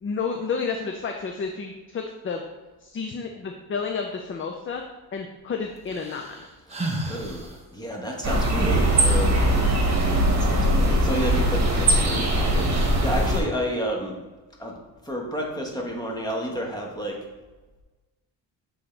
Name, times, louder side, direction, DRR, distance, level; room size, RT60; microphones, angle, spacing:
voice 1, 0.0-2.4 2.8-4.8 5.1-6.5, left 5 dB, 30° left, 3 dB, 0.5 m, -31 dB
sound 1, 5.9-7.5 8.4-9.3 10.8-10.9 11.2-12.1 12.7-13.2, right 1 dB, 15° right, 0.9 m, -32 dB
voice 2, 7.0-9.5 10.4-14.2 14.6-14.8 15.0-17.2, equal, 10° left, 0 dB, 1.2 m, -31 dB
sound 2, 8.2-13.4, right 1 dB, 35° right, 1.5 m, -21 dB
7.7 x 3.8 x 3.3 m, 1.2 s
cardioid pair, 105°, 44 cm